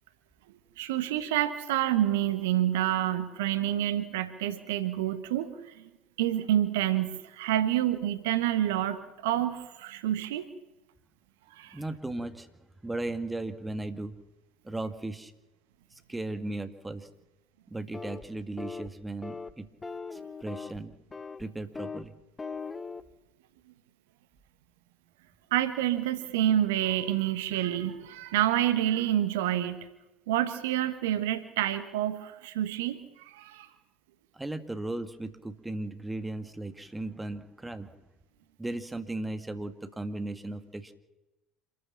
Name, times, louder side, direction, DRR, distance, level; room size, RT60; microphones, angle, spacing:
voice 1, 0.8-5.9 6.2-10.5 11.5-11.8 25.5-29.8 30.3-33.7, right 12 dB, 65° right, 12 dB, 1.3 m, -28 dB
voice 2, 11.7-12.5 12.8-14.2 14.6-15.3 15.9-17.1 17.7-19.7 20.1-20.9 21.4-22.1 34.3-37.9 38.6-40.9, right 2 dB, 10° right, 8 dB, 2.0 m, -36 dB
sound 1, 17.9-18.2 18.6-18.9 19.2-19.5 19.8-20.8 21.1-21.4 21.7-22.1 22.4-23.0, left 4 dB, 20° left, 1.3 m, -39 dB
27.0 x 14.0 x 7.3 m, 1.0 s
figure-of-eight pair, 65°, 0 cm